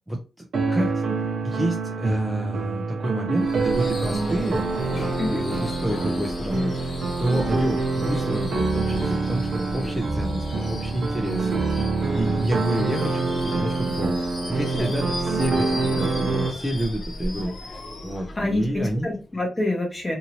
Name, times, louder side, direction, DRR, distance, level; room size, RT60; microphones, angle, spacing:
voice 1, 0.1-0.9 1.4-4.7 5.3-11.9 12.1-14.2 14.5-17.5 18.0-19.1, right 1 dB, 5° right, 1 dB, 0.5 m, -29 dB
sound 1, 0.5-16.5, right 3 dB, 70° right, 0.7 m, -26 dB
Subway metro underground / Screech, 3.4-19.3, left 1 dB, 45° left, 0.7 m, -35 dB
voice 2, 18.4-20.2, left 2 dB, 20° left, 0 dB, 1.0 m, -27 dB
2.7 x 2.6 x 2.9 m, 0.30 s
wide cardioid pair, 155°, 0 cm